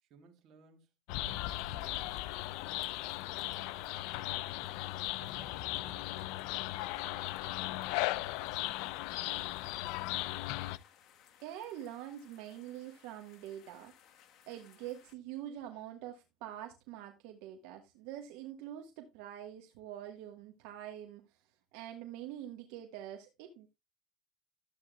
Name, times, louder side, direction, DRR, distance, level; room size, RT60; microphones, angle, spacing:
voice 1, 0.0-0.9 1.2-2.2 2.7-4.8 5.2-10.4, right 6 dB, 55° right, 3.1 m, -62 dB
sound 1, 1.1-10.8, left 17 dB, 75° left, 0.5 m, -37 dB
sound 2, 1.2-15.1, left 10 dB, 55° left, 1.3 m, -63 dB
voice 2, 11.4-13.9 14.5-21.4 21.7-23.7, right 11 dB, 80° right, 1.4 m, -45 dB
13.0 x 8.4 x 2.3 m
cardioid pair, 125°, 0 cm